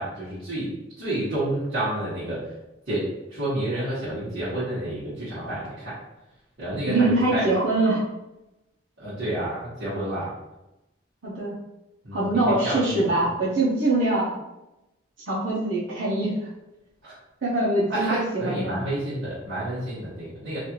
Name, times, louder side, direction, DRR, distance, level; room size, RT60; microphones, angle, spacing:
voice 1, 0.0-2.5 2.9-6.0 6.6-7.5 9.0-10.3 12.0-13.0 17.0-17.2 17.9-20.6, right 1 dB, 55° right, -14 dB, 1.3 m, -29 dB
voice 2, 6.9-8.0 11.2-11.6 12.1-14.3 15.3-16.4 17.4-18.8, right 2 dB, 85° right, -7 dB, 0.8 m, -23 dB
3.2 x 2.5 x 2.9 m, 0.94 s
head